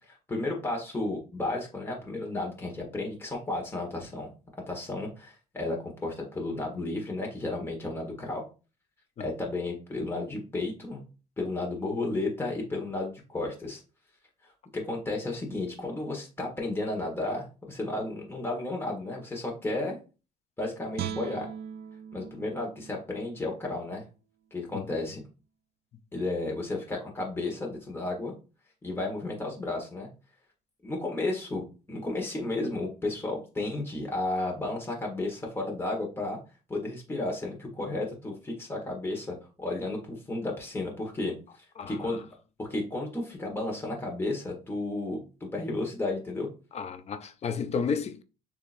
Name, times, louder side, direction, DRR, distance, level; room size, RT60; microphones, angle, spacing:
voice 1, 0.1-4.3 4.7-8.5 9.2-11.0 11.4-13.8 14.7-20.0 20.6-21.5 22.1-24.0 24.5-25.2 26.1-28.3 28.8-30.1 30.8-36.4 36.7-42.2 42.6-46.5, left 2 dB, 15° left, 1.4 m, -33 dB
Guitar, 20.9-24.1 24.5-24.7, right 9 dB, 70° right, 0.5 m, -40 dB
voice 2, 41.8-42.2 46.7-48.2, left 5 dB, 40° left, 0.6 m, -32 dB
6.8 x 2.9 x 2.6 m
cardioid pair, 110°, 17 cm